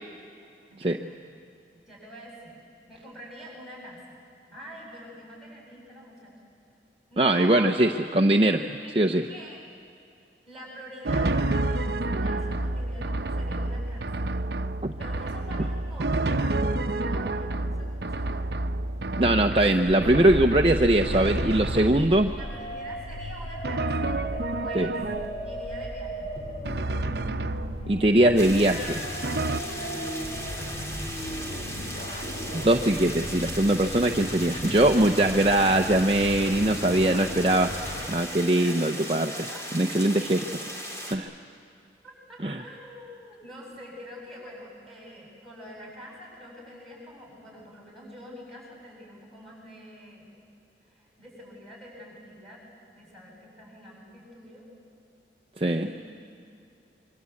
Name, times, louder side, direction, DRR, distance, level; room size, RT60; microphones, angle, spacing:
voice 1, 0.7-1.3 1.9-4.1 4.5-6.3 7.1-7.7 8.9-9.6 10.5-14.3 15.0-18.5 22.4-25.0 25.4-26.3 28.2-29.2 29.4-31.0 35.1-36.6 36.8-36.9 38.3-38.9 39.2-39.6 42.0-50.3 50.9-52.6 52.9-54.7 55.6-56.0, equal, ahead, -2 dB, 8.0 m, -45 dB
voice 2, 7.2-9.2 14.8-14.9 19.2-22.3 24.7-24.9 27.9-28.8 32.5-37.7 38.1-39.3 39.7-40.6 41.1-41.3 42.4-42.6 55.6-55.9, right 1 dB, 30° right, 3 dB, 0.7 m, -21 dB
Drum, 11.0-22.4 23.6-25.6 26.6-28.1 29.2-29.6, right 2 dB, 65° right, 0.8 m, -29 dB
sound 1, 19.8-38.1, equal, 35° left, 2.6 m, -36 dB
sound 2, 28.4-41.2, equal, 15° left, 2.6 m, -38 dB
26.0 x 24.5 x 8.5 m, 2.5 s
head